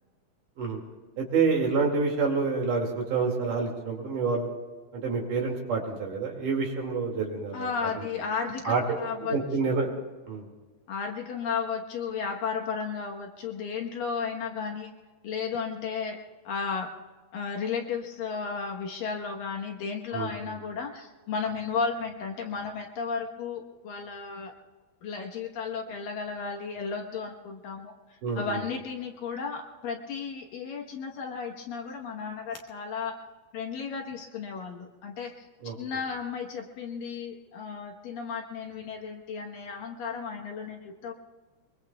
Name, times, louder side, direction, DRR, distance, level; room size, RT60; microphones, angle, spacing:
voice 1, 1.2-4.5 4.9-7.7 8.0-8.1 8.7-8.8 9.3-9.9 10.3-10.4 20.1-20.6 28.2-28.6 35.6-35.8, right 4 dB, 55° right, 0 dB, 3.6 m, -28 dB
voice 2, 7.5-9.4 10.9-14.9 15.2-16.2 16.4-16.9 17.3-24.5 25.0-33.1 33.5-35.5 35.8-41.1, left 5 dB, 65° left, 1 dB, 2.6 m, -34 dB
23.5 x 23.5 x 2.3 m, 1.3 s
omnidirectional pair, 4.7 m